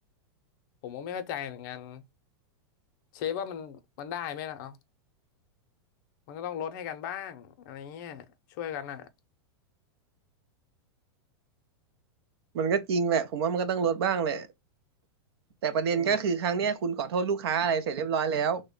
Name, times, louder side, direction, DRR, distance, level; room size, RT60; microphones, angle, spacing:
voice 1, 0.8-2.0 3.1-4.8 6.3-9.1 15.9-16.2, left 9 dB, 50° left, 0.5 m, -37 dB
voice 2, 12.5-14.5 15.6-18.6, right 6 dB, 70° right, 0.6 m, -27 dB
3.3 x 2.1 x 3.6 m
supercardioid pair, 155°, 13 cm